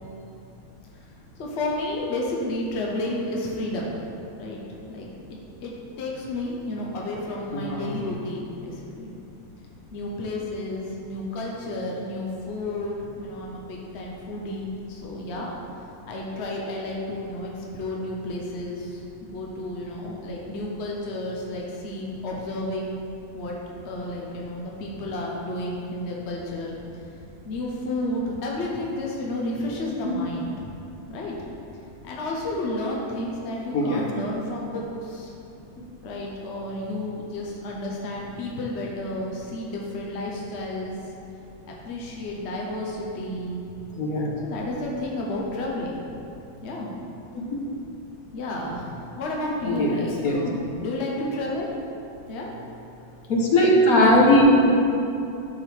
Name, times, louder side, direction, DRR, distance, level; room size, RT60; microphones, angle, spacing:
voice 1, 1.4-4.0 4.4-4.6 4.9-5.7 6.0-9.1 9.9-15.5 16.1-23.0 23.3-23.5 23.8-26.8 27.4-30.7 31.1-31.4 32.0-35.3 36.0-40.9 41.8-43.6 44.4-45.9 46.6-46.9 48.3-51.7 52.3-52.5, left 1 dB, 50° left, -2 dB, 1.2 m, -31 dB
voice 2, 7.5-8.0 33.7-34.0 44.0-44.3 49.7-49.9 50.2-50.4 53.3-54.7, left 1 dB, 70° left, -2 dB, 1.5 m, -18 dB
12.5 x 4.7 x 3.5 m, 2.7 s
omnidirectional pair, 1.6 m